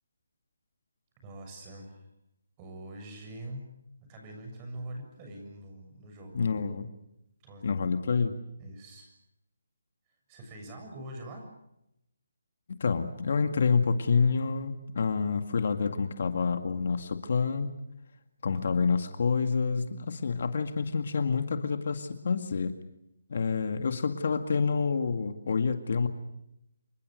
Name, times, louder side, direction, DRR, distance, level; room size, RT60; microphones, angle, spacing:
voice 1, 1.2-2.1 2.6-3.6 4.0-6.5 7.4-7.7 8.6-9.1 10.3-11.5, right 1 dB, 20° right, 3 dB, 7.1 m, -44 dB
voice 2, 6.3-6.9 7.6-8.3 12.7-17.7 18.4-22.7 23.3-26.1, left 5 dB, 55° left, 8 dB, 2.1 m, -28 dB
28.0 x 24.0 x 6.6 m, 0.82 s
hypercardioid pair, 165°, 0 cm